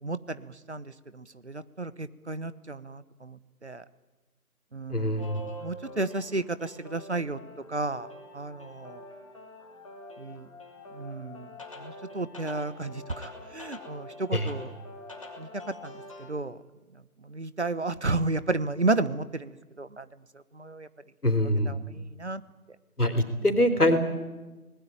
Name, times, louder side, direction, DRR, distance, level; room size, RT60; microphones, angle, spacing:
voice 1, 0.0-3.8 4.7-7.4 7.7-8.1 8.3-9.0 10.2-10.5 10.9-11.5 11.8-14.7 15.4-15.5 15.8-16.6 17.2-19.5 19.8-20.1 20.5-20.9 21.4-22.4, right 2 dB, 50° right, 15 dB, 1.2 m, -33 dB
voice 2, 4.9-5.4 14.3-14.5 21.2-21.8 23.0-24.0, left 1 dB, 80° left, 8 dB, 3.9 m, -24 dB
sound 1, 5.2-16.3, left 1 dB, 20° left, 2.9 m, -45 dB
26.0 x 19.5 x 8.9 m, 1.2 s
figure-of-eight pair, 165°, 45 cm